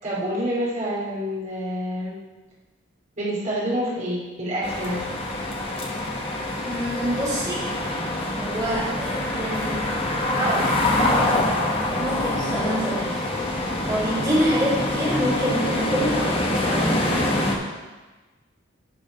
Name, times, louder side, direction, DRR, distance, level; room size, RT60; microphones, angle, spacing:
voice 1, 0.0-2.1 3.2-5.0, equal, 40° right, -9 dB, 3.0 m, -27 dB
sound 1, 4.6-17.6, left 1 dB, 30° left, 1.1 m, -25 dB
voice 2, 6.6-7.7 8.4-9.9 10.4-11.5 12.0-13.2 13.9-17.2, equal, 15° right, -9 dB, 2.9 m, -26 dB
10.5 x 4.8 x 5.1 m, 1.2 s
head